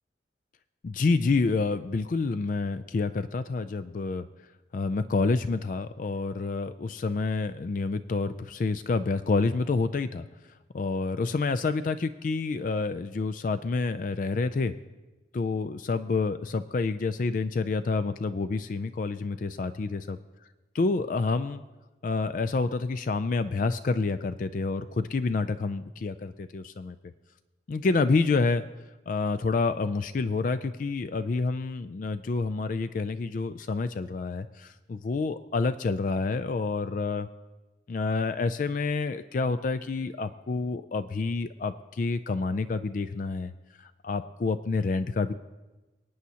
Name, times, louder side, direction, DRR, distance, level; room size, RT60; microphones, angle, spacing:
voice 1, 0.8-4.2 4.7-10.3 10.7-14.7 15.3-20.2 20.8-21.6 22.0-27.0 27.7-28.6 29.1-37.3 37.9-43.5 43.8-45.3, left 3 dB, 45° left, 12 dB, 0.3 m, -28 dB
25.0 x 9.4 x 2.8 m, 1.1 s
head